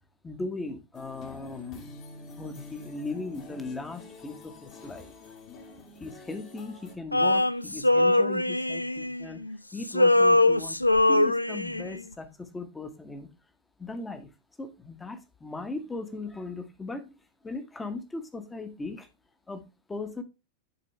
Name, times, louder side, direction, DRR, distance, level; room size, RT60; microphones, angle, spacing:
voice 1, 0.2-2.0 2.4-5.1 6.0-9.4 9.7-10.8 11.1-13.3 13.8-14.3 14.6-17.1 17.4-19.1 19.5-20.2, left 3 dB, 10° left, 8 dB, 1.2 m, -38 dB
sound 1, 0.9-7.0, left 3 dB, 35° left, 1.8 m, -47 dB
Male singing, 7.1-9.6 9.8-12.0, left 2 dB, 85° left, 0.3 m, -22 dB
11.0 x 4.4 x 3.2 m, 0.27 s
figure-of-eight pair, 90°, 0 cm